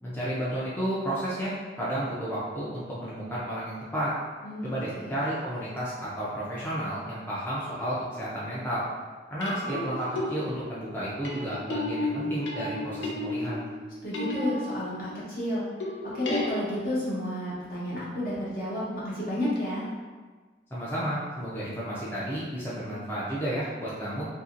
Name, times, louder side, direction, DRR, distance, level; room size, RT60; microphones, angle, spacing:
voice 1, 0.0-4.1 4.6-8.9 9.3-13.7 20.7-24.3, right 1 dB, 10° left, -9 dB, 0.4 m, -32 dB
voice 2, 4.4-5.1 14.0-15.6 16.1-19.9, left 1 dB, 55° left, -8 dB, 0.9 m, -31 dB
sound 1, 7.6-8.0 9.4-15.3 15.8-17.2 19.6-19.7, left 1 dB, 85° left, 0.5 m, -33 dB
2.8 x 2.7 x 2.5 m, 1.4 s
head